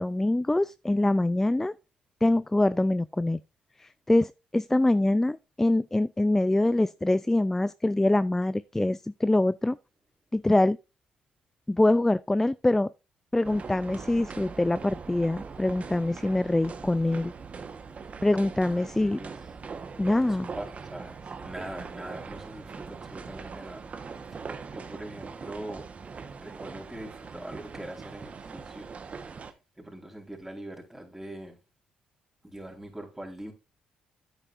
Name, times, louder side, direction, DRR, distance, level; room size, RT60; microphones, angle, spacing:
voice 1, 0.0-1.7 2.2-3.4 3.8-9.8 10.3-10.8 11.7-12.9 13.3-17.3 18.2-19.2 20.0-20.5, left 2 dB, 10° left, 0.4 m, -24 dB
sound 1, 13.4-29.5, right 5 dB, 45° right, 1.3 m, -41 dB
voice 2, 18.7-19.4 20.3-20.6 20.9-23.8 24.7-25.9 26.4-28.9 29.8-31.6 32.4-33.5, right 1 dB, 10° right, 4.4 m, -42 dB
9.9 x 9.0 x 2.6 m
hypercardioid pair, 50°, 3 cm